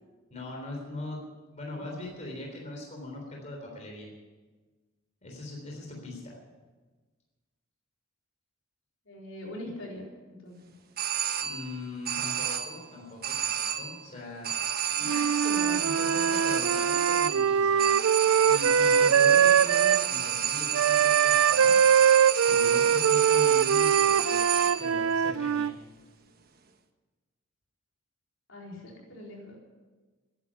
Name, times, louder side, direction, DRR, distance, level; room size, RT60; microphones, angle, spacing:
voice 1, 0.3-4.1 5.2-6.4 11.4-14.5 15.0-17.9 18.3-21.8 22.5-25.7, left 2 dB, 35° left, -1 dB, 3.5 m, -40 dB
voice 2, 9.0-10.6 15.4-15.8 28.5-29.6, left 1 dB, 70° left, -2 dB, 4.3 m, -43 dB
sound 1, 11.0-11.8 12.0-12.9 13.2-14.1 14.4-25.0, right 9 dB, 45° right, 1.2 m, -30 dB
Wind instrument woodwind instrument, 15.0-20.0 20.7-25.7, right 8 dB, 80° right, 0.4 m, -22 dB
14.0 x 10.5 x 9.8 m, 1.3 s
head